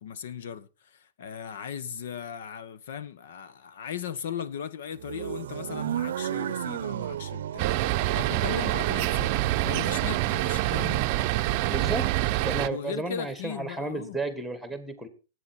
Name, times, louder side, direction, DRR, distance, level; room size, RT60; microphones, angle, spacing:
voice 1, 0.0-7.7 8.1-9.3 9.6-11.0 12.6-14.2, left 8 dB, 75° left, 1.3 m, -37 dB
sound 1, 5.0-11.8, right 11 dB, 85° right, 0.6 m, -35 dB
sound 2, 7.6-12.7, right 17 dB, 40° right, 0.6 m, -26 dB
voice 2, 11.7-15.1, right 2 dB, ahead, 1.7 m, -33 dB
19.5 x 8.6 x 4.4 m
supercardioid pair, 165°, 0 cm